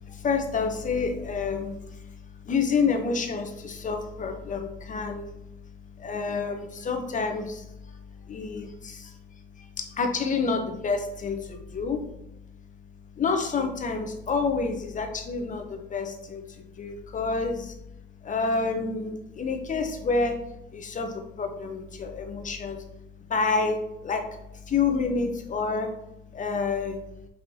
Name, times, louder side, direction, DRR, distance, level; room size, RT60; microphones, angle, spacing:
voice 1, 0.1-1.8 2.5-5.3 6.0-7.6 8.3-9.1 9.8-12.0 13.2-16.4 16.8-17.7 18.2-20.4 20.7-22.8 23.3-23.8 24.0-24.3 24.7-25.9 26.3-27.0, left 4 dB, 40° left, 5 dB, 0.7 m, -28 dB
5.4 x 2.8 x 2.8 m, 0.86 s
cardioid pair, 90°, 20 cm